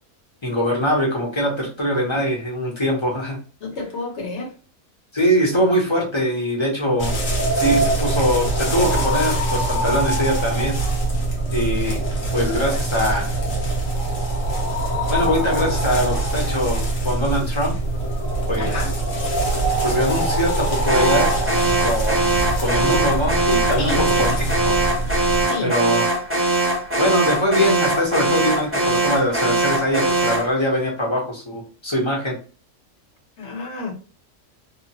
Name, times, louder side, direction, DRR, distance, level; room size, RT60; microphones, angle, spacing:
voice 1, 0.4-3.4 5.1-7.2 7.5-10.8 11.5-12.0 12.3-13.3 15.1-17.8 18.5-18.7 19.8-21.3 21.8-22.3 22.6-24.8 25.6-26.1 27.0-32.3, equal, 25° left, -2 dB, 0.8 m, -22 dB
voice 2, 3.6-4.5 7.6-7.8 18.5-18.9 23.8-24.3 25.4-25.7 33.4-33.9, left 2 dB, 60° left, 0 dB, 1.2 m, -29 dB
sound 1, 7.0-25.5, right 2 dB, 75° left, 1.3 m, -23 dB
Alarm, 20.9-30.5, right 2 dB, 10° right, 0.8 m, -21 dB
2.8 x 2.3 x 2.8 m, 0.36 s
omnidirectional pair, 1.4 m